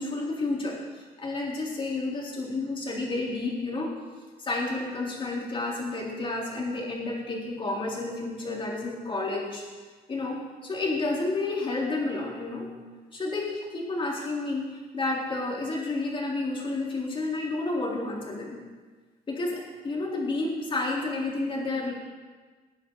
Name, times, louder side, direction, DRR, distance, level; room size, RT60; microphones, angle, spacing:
voice 1, 0.0-3.9 4.4-9.6 10.1-12.7 13.1-18.6 19.3-21.9, left 2 dB, 30° left, -3 dB, 3.8 m, -30 dB
19.5 x 9.7 x 4.0 m, 1.4 s
cardioid pair, 110°, 17 cm